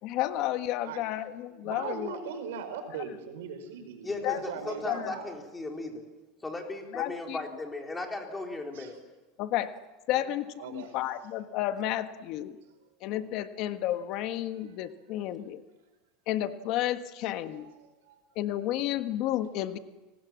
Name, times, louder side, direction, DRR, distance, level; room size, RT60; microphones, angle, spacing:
voice 1, 0.0-2.2 4.2-4.4 4.8-5.2 6.9-7.4 9.4-9.7 10.1-12.6 13.0-15.6 16.3-17.7 18.3-19.8, left 13 dB, 50° left, 9 dB, 1.5 m, -31 dB
voice 2, 1.6-5.3 8.7-8.9 10.1-10.2 10.6-11.0 17.6-18.2, right 6 dB, 90° right, 8 dB, 4.7 m, -40 dB
voice 3, 4.0-6.0 6.4-9.0, left 2 dB, 10° left, 2 dB, 4.1 m, -36 dB
30.0 x 19.5 x 7.5 m, 1.1 s
supercardioid pair, 140°, 0 cm